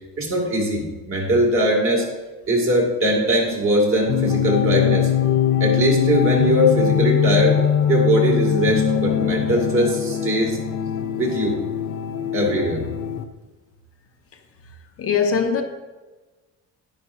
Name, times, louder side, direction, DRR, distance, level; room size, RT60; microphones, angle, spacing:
voice 1, 0.2-2.1 2.5-5.1 5.6-7.6 7.9-10.6 11.2-11.6 12.3-12.8, right 1 dB, 40° right, 2.4 m, -20 dB
sound 1, 4.1-13.2, left 9 dB, 80° left, 0.7 m, -21 dB
voice 2, 15.0-15.6, left 6 dB, 45° left, 0.9 m, -20 dB
11.0 x 9.9 x 2.7 m
cardioid pair, 135°, 32 cm